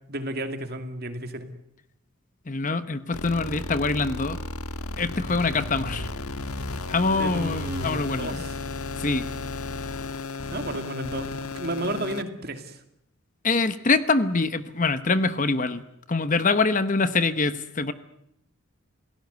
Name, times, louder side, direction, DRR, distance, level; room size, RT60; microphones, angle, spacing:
voice 1, 0.1-1.5 7.2-8.5 10.5-12.8, right 1 dB, 45° right, 7 dB, 2.4 m, -32 dB
voice 2, 2.5-4.4 5.0-6.1 6.9-8.4 9.0-9.3 13.4-15.8 16.1-17.9, left 3 dB, 35° left, 12 dB, 0.9 m, -24 dB
sound 1, 3.1-12.2, left 3 dB, 85° left, 1.4 m, -34 dB
27.5 x 17.5 x 8.1 m, 0.78 s
head